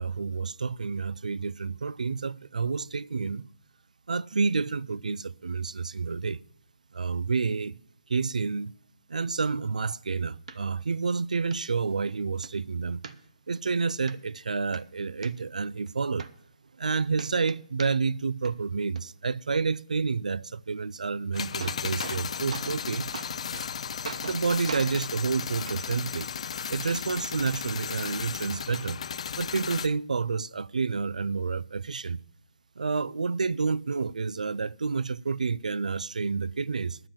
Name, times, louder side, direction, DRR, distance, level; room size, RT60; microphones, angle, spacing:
voice 1, 0.0-3.5 4.1-6.4 6.9-7.8 8.1-8.7 9.1-13.0 13.5-16.3 16.8-23.1 24.2-26.3 26.7-29.0 29.4-32.2 32.8-37.0, right 4 dB, 85° right, 0.4 m, -29 dB
sound 1, 10.5-10.6 11.0-11.1 11.5-11.6 12.1-12.5 13.0-13.6 14.1-14.2 14.6-15.3 15.9-16.0 16.2-16.9 17.1-18.2 18.4-19.0 21.0-21.1 21.4-22.2 22.5-22.8 23.1-23.7 24.0-24.4 24.7-24.9 25.7-25.8 26.7-26.8, right 5 dB, 65° right, 1.0 m, -40 dB
sound 2, 21.3-29.9, left 7 dB, 55° left, 0.4 m, -35 dB
10.0 x 7.5 x 8.7 m
hypercardioid pair, 155°, 4 cm